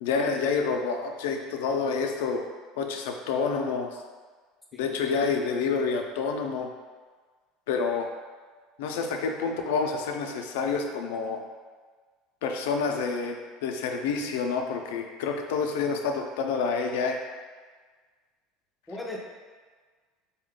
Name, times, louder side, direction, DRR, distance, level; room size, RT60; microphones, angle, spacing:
voice 1, 0.0-2.4 2.8-4.0 4.7-6.7 7.7-8.1 8.8-11.4 12.4-17.2, left 5 dB, 90° left, 3 dB, 0.4 m, -28 dB
voice 2, 4.7-5.2 18.9-19.2, left 2 dB, 5° left, -2 dB, 0.5 m, -39 dB
4.2 x 2.2 x 3.6 m, 1.5 s
supercardioid pair, 130°, 0 cm